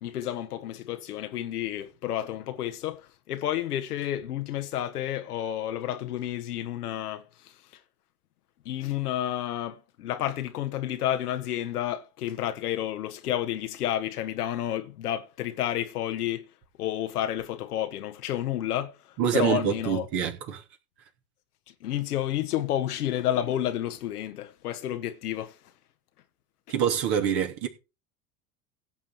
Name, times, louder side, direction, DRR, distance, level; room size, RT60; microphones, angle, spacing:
voice 1, 0.0-7.2 8.6-16.4 16.8-19.0 19.3-20.1 21.8-25.5, left 12 dB, 70° left, 1.3 m, -30 dB
voice 2, 19.2-20.6 26.7-27.7, right 8 dB, 55° right, 3.2 m, -26 dB
16.5 x 7.4 x 4.5 m
figure-of-eight pair, 75°, 47 cm